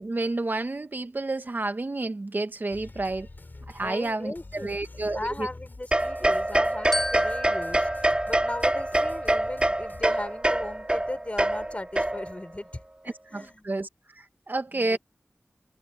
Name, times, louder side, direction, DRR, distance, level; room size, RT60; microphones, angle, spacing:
voice 1, 0.0-3.3 3.7-5.5 13.3-13.9 14.2-15.0, right 2 dB, 50° right, 1.9 m, -30 dB
sound 1, 2.7-10.0, left 2 dB, 50° left, 5.9 m, -47 dB
voice 2, 3.8-13.7 14.7-15.0, left 1 dB, 30° left, 6.0 m, -37 dB
sound 2, 5.9-12.5, right 1 dB, 25° right, 2.8 m, -25 dB
Glockenspiel, 6.9-9.4, left 1 dB, 10° left, 1.6 m, -34 dB
open air
wide cardioid pair, 70°, 4 cm